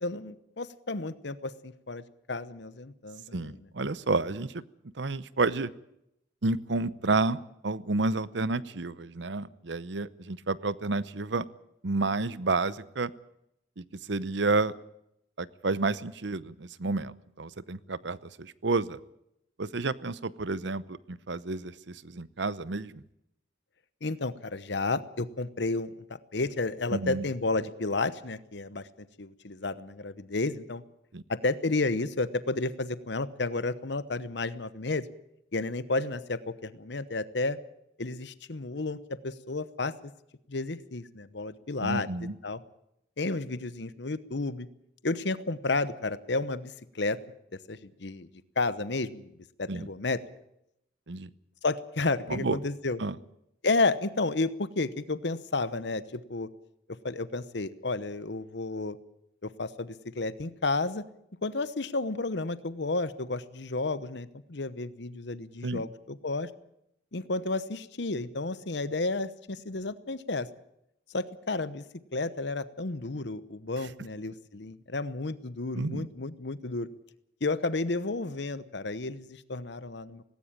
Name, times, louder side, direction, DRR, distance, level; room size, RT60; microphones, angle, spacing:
voice 1, 0.0-2.0 2.3-3.6 24.0-30.8 31.3-35.1 35.5-37.6 38.0-40.1 40.5-42.1 42.4-42.6 43.2-44.7 45.0-47.2 47.7-48.3 48.6-49.3 49.6-50.2 51.6-53.0 53.6-56.5 57.0-59.0 59.4-61.0 61.4-66.5 67.1-70.5 71.1-71.8 72.1-76.9 77.4-80.2, left 3 dB, 65° left, 15 dB, 1.0 m, -32 dB
voice 2, 3.3-4.6 5.0-5.7 6.4-11.4 11.8-13.1 13.8-14.7 15.4-19.0 19.6-23.0 26.9-27.2 31.1-31.2 41.8-42.3 49.7-49.9 51.1-51.3 52.3-52.6 53.0-53.2 65.6-65.8 75.7-76.1, right 3 dB, 70° right, 17 dB, 0.8 m, -30 dB
18.5 x 18.0 x 8.8 m, 0.79 s
head